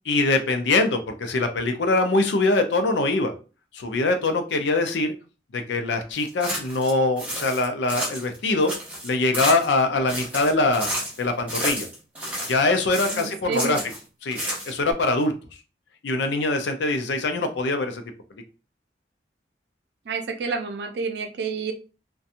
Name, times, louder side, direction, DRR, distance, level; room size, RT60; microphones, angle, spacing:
voice 1, 0.1-3.3 3.7-5.1 5.5-8.7 9.0-11.9 12.5-13.8 14.2-14.4 14.7-15.3 16.0-18.0, left 2 dB, 90° left, 6 dB, 0.5 m, -23 dB
sound 1, 6.2-6.9 7.2-8.4 8.6-9.8 10.1-11.2 11.5-12.6 12.9-14.0 14.3-14.9, equal, 10° right, 0.8 m, -31 dB
voice 2, 13.1-13.8 20.1-21.7, right 4 dB, 75° right, 6 dB, 0.5 m, -29 dB
2.7 x 2.2 x 2.5 m, 0.34 s
head